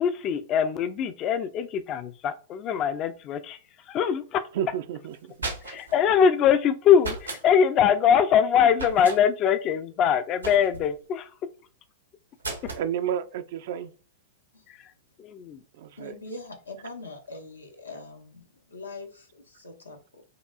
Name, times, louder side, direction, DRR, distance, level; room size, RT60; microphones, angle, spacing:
voice 1, 0.0-3.6 3.9-4.4 5.6-11.3 15.2-15.6, left 8 dB, 35° left, 0.3 m, -22 dB
voice 2, 4.5-5.3 12.8-13.9 15.7-16.1, right 9 dB, 55° right, 0.3 m, -31 dB
sound 1, 5.1-6.0 7.0-7.4 8.7-9.2 10.4-10.9 12.4-12.9, right 3 dB, 85° right, 0.9 m, -35 dB
voice 3, 16.0-20.2, left 2 dB, 85° left, 0.7 m, -42 dB
4.7 x 2.3 x 2.3 m
figure-of-eight pair, 100°, 0 cm